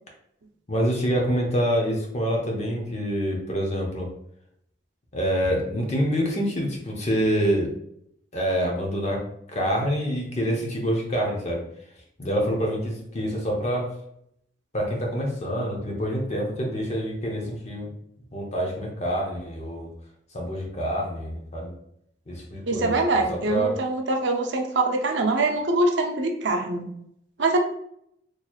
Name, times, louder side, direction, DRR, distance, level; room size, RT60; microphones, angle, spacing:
voice 1, 0.7-4.1 5.1-7.7 8.3-9.2 9.5-11.6 12.2-13.9 14.7-17.9 18.3-19.9 20.3-21.7 22.3-23.0 23.3-23.8, equal, 35° left, 0 dB, 0.9 m, -26 dB
voice 2, 22.6-26.9 27.4-27.6, right 2 dB, 70° right, 3 dB, 0.6 m, -24 dB
4.4 x 3.1 x 2.4 m, 0.72 s
head